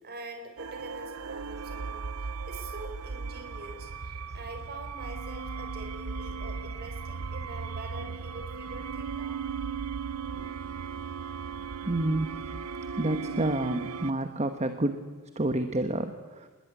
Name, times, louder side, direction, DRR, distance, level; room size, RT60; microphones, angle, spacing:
voice 1, 0.0-9.4, right 2 dB, 45° right, 6 dB, 4.4 m, -44 dB
sound 1, 0.6-14.1, right 5 dB, 80° right, 0.8 m, -37 dB
voice 2, 11.8-12.3 13.0-15.0 15.4-16.5, right 1 dB, 30° right, 8 dB, 1.2 m, -29 dB
26.0 x 20.5 x 9.4 m, 1.3 s
head